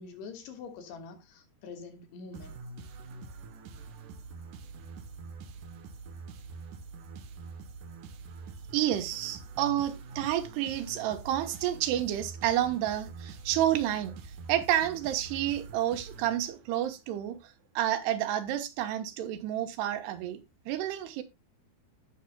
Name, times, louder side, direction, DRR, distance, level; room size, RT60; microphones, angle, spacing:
voice 1, 0.0-2.6, left 4 dB, 85° left, 3.7 m, -45 dB
sound 1, 2.3-16.9, right 4 dB, 70° right, 2.1 m, -45 dB
voice 2, 8.7-14.2 14.5-20.4 20.7-21.2, right 12 dB, 85° right, 3.2 m, -30 dB
17.0 x 5.8 x 2.2 m
omnidirectional pair, 4.7 m